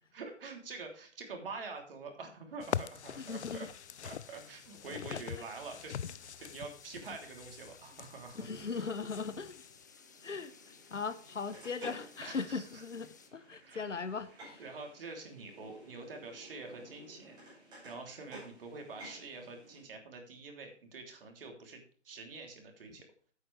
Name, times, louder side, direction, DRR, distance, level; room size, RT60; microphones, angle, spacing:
voice 1, 0.1-3.7 4.0-8.9 12.2-12.8 13.6-13.8 14.6-17.4 17.8-23.1, right 4 dB, 50° right, 3 dB, 3.2 m, -46 dB
sound 1, 2.6-9.8, left 8 dB, 65° left, 0.6 m, -43 dB
sound 2, 3.1-13.3, left 6 dB, 15° left, 0.5 m, -59 dB
voice 2, 3.2-3.7 5.1-5.2 8.3-9.6 10.2-10.5 10.9-14.6, left 5 dB, 85° left, 12 dB, 1.1 m, -39 dB
sound 3, 9.6-19.8, right 1 dB, 10° right, 6.2 m, -54 dB
12.0 x 8.7 x 3.3 m, 0.43 s
figure-of-eight pair, 145°, 36 cm